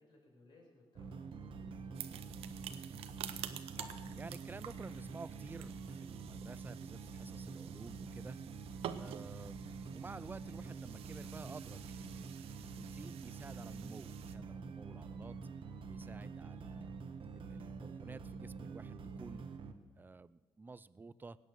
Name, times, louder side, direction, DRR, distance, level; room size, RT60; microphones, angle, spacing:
voice 1, 0.0-2.7, left 2 dB, 55° left, 0 dB, 5.1 m, -64 dB
sound 1, 1.0-19.7, right 4 dB, 60° right, 1.2 m, -47 dB
sound 2, 1.9-14.4, right 10 dB, 80° right, 0.8 m, -50 dB
sound 3, 3.7-10.5, left 2 dB, 85° left, 4.0 m, -63 dB
voice 2, 4.1-8.4 9.0-12.3 12.6-15.4 15.9-16.9 17.3-19.4 19.9-21.4, right 3 dB, 20° right, 18 dB, 0.5 m, -52 dB
17.5 x 8.7 x 6.8 m, 1.3 s
cardioid pair, 90°, 10 cm